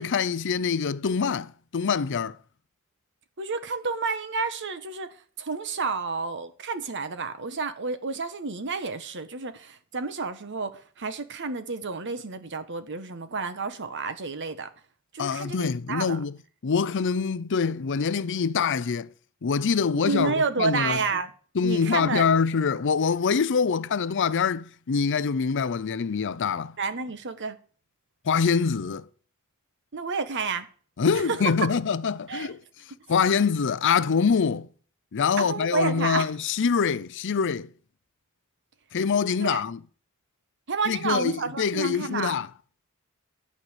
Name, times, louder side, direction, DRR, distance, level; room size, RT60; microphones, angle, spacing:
voice 1, 0.0-2.4 15.2-16.3 16.6-19.1 19.4-21.0 21.6-26.8 28.2-29.1 31.0-32.6 33.1-34.7 35.1-37.7 38.9-39.8 40.9-42.5, left 6 dB, 55° left, 0.5 m, -25 dB
voice 2, 3.4-14.7 15.1-16.2 20.0-21.3 21.6-22.3 26.8-27.6 29.9-30.7 31.1-31.4 32.3-32.5 32.9-33.0 35.4-36.3 39.4-39.6 40.7-42.4, right 4 dB, 55° right, 1.2 m, -30 dB
11.5 x 5.6 x 8.0 m
head